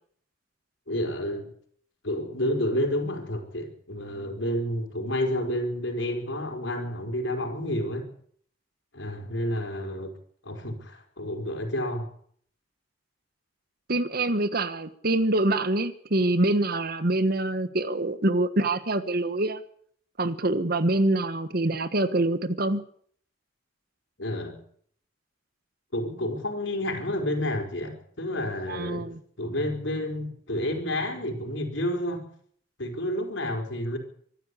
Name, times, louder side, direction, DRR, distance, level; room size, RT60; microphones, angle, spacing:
voice 1, 0.9-1.5 2.0-8.1 8.9-10.1 10.4-12.1 24.2-24.6 25.9-29.1 29.4-32.2 32.8-34.0, left 1 dB, 85° left, 5 dB, 4.9 m, -30 dB
voice 2, 13.9-19.6 20.2-22.8 28.7-29.2, right 2 dB, 55° right, 13 dB, 1.4 m, -25 dB
24.5 x 12.5 x 8.5 m, 0.62 s
head